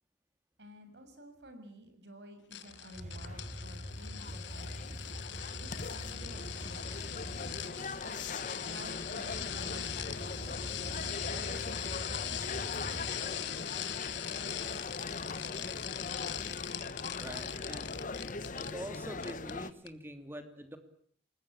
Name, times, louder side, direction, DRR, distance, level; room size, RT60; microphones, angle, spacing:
voice 1, 0.6-5.1 5.6-8.1 8.7-13.7, right 1 dB, 70° right, 7 dB, 6.8 m, -52 dB
sound 1, 2.5-19.0 19.2-19.5 19.9-20.0, left 11 dB, 85° left, 1.3 m, -41 dB
sound 2, 2.6-7.6 8.7-13.1, equal, 40° right, 5.9 m, -44 dB
sound 3, 3.2-19.7, left 3 dB, 45° left, 1.1 m, -41 dB
voice 2, 17.2-17.9 18.5-20.8, equal, 15° right, 7 dB, 2.9 m, -44 dB
27.5 x 20.5 x 8.7 m, 0.63 s
head